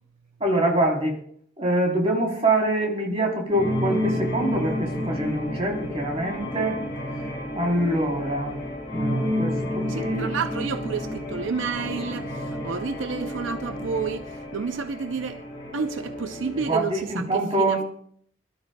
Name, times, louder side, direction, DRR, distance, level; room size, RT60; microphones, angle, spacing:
voice 1, 0.4-1.2 1.6-6.8 7.2-7.3 7.6-8.6 8.9-10.3 16.6-17.8, right 1 dB, 30° right, 3.5 m, -25 dB
sound 1, 3.5-16.8, left 1 dB, 25° left, 6.9 m, -31 dB
voice 2, 9.9-15.4 15.7-17.2 17.6-17.8, right 5 dB, 80° right, 0.5 m, -30 dB
24.5 x 13.0 x 2.3 m
head